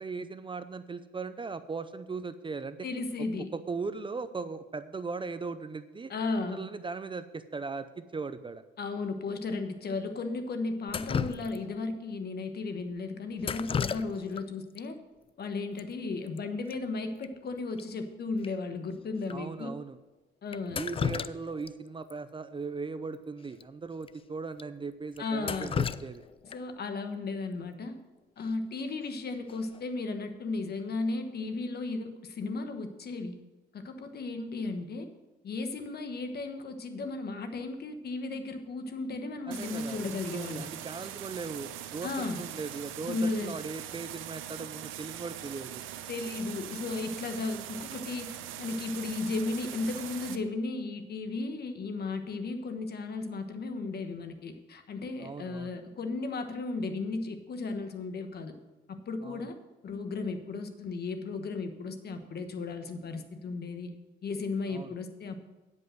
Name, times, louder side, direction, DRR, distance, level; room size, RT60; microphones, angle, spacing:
voice 1, 0.0-2.8 3.5-6.1 6.5-8.6 19.3-20.0 20.7-26.2 39.5-45.8 55.2-55.8 59.2-59.4 64.7-64.9, right 4 dB, 25° right, 12 dB, 0.5 m, -38 dB
voice 2, 2.8-3.5 6.1-6.6 8.8-15.0 15.4-19.7 20.4-20.8 25.2-25.7 26.4-28.0 28.4-33.4 33.7-35.1 35.4-40.7 42.0-42.4 43.0-43.6 46.1-58.5 58.9-59.6 59.8-63.9 64.2-65.4, left 3 dB, 55° left, 8 dB, 1.2 m, -35 dB
Drip, 10.9-11.9 13.4-14.4 14.7-14.8 15.8-15.9 16.1-16.4 16.7-16.8 17.2-17.3 17.8-17.9 18.4-18.5 19.2-19.4 20.5-21.7 22.1-22.2 23.5-23.6 24.0-24.1 24.6-24.7 25.2-26.8 28.8-29.1 29.5-29.9, left 6 dB, 30° left, 0.3 m, -34 dB
sound 1, 39.5-50.4, right 11 dB, 90° right, 0.7 m, -42 dB
9.6 x 5.4 x 7.8 m, 1.1 s
cardioid pair, 90°, 20 cm